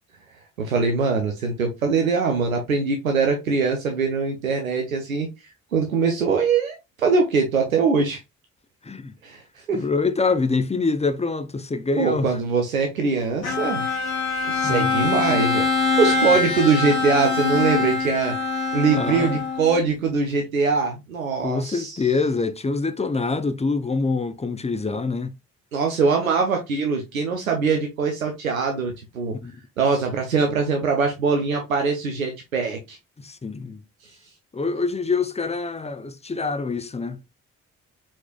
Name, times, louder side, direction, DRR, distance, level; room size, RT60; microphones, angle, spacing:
voice 1, 0.6-5.3 5.7-8.2 9.2-9.8 12.0-13.8 14.5-15.7 16.0-18.3 18.7-22.1 25.7-29.4 29.8-33.0, right 4 dB, 90° right, 0.6 m, -22 dB
voice 2, 9.7-12.3 14.6-15.1 18.9-19.4 21.4-25.3 29.4-29.5 33.2-33.8 34.5-37.2, left 4 dB, 15° left, 0.7 m, -25 dB
Bowed string instrument, 13.4-19.9, left 4 dB, 80° left, 1.2 m, -23 dB
4.6 x 4.2 x 2.4 m
figure-of-eight pair, 40°, 40 cm